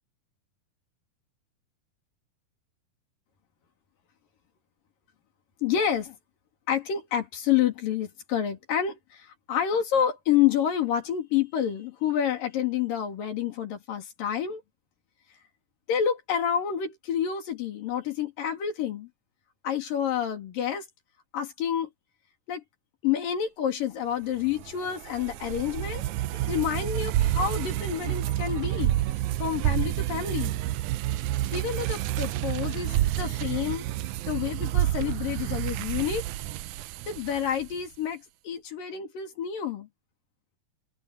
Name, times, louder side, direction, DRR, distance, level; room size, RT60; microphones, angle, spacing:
voice 1, 5.6-6.2 6.7-14.6 15.9-19.1 19.6-20.9 21.3-21.9 22.5-22.6 23.0-28.9 29.4-30.6 31.5-36.3 37.1-39.9, left 9 dB, 85° left, 4.6 m, -28 dB
sound 1, 24.4-37.8, right 14 dB, 80° right, 1.8 m, -29 dB
omnidirectional pair, 3.8 m